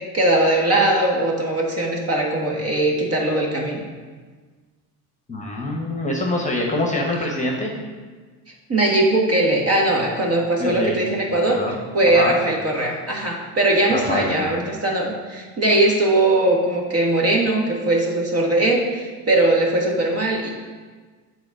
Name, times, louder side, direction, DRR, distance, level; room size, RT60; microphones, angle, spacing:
voice 1, 0.1-3.8 8.7-11.6 11.9-20.5, right 2 dB, 30° right, 0 dB, 1.4 m, -20 dB
voice 2, 5.3-7.7 10.6-11.0 11.3-11.7 12.1-12.4 13.9-14.7, left 2 dB, 15° left, 0 dB, 1.2 m, -25 dB
7.7 x 4.1 x 4.8 m, 1.4 s
supercardioid pair, 85°, 47 cm